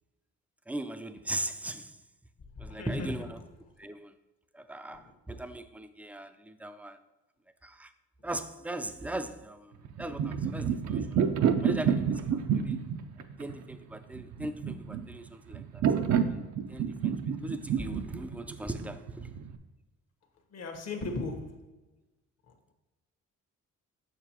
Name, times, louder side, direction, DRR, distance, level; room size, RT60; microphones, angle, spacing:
voice 1, 0.7-2.0 2.6-3.5 3.8-4.2 4.5-7.0 7.6-7.9 8.2-11.3 11.6-12.8 13.4-15.8 16.3-16.4 16.7-19.3, right 1 dB, 5° right, 0.4 m, -39 dB
voice 2, 2.7-3.1 20.5-21.6, left 3 dB, 55° left, 1.3 m, -36 dB
sound 1, 9.8-19.6, right 7 dB, 70° right, 0.6 m, -29 dB
6.8 x 6.3 x 3.0 m
cardioid pair, 90°, 30 cm